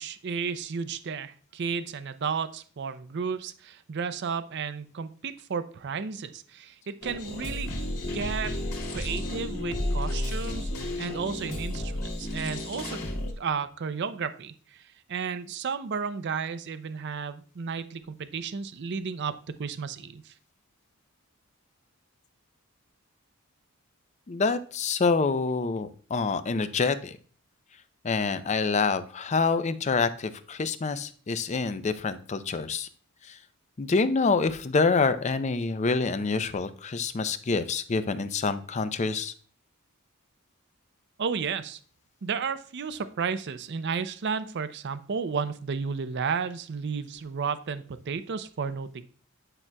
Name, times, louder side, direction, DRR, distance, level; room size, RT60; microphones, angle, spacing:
voice 1, 0.0-7.8 8.0-8.6 8.9-13.0 13.4-14.8 15.1-20.3 41.2-41.8 42.2-49.0, right 5 dB, 50° right, 12 dB, 0.5 m, -33 dB
sound 1, 7.0-13.3, left 1 dB, 80° left, 2.3 m, -32 dB
voice 2, 24.3-27.2 28.0-32.9 33.2-33.4 33.8-39.3, left 4 dB, 30° left, 12 dB, 0.4 m, -26 dB
9.8 x 6.0 x 2.2 m, 0.44 s
head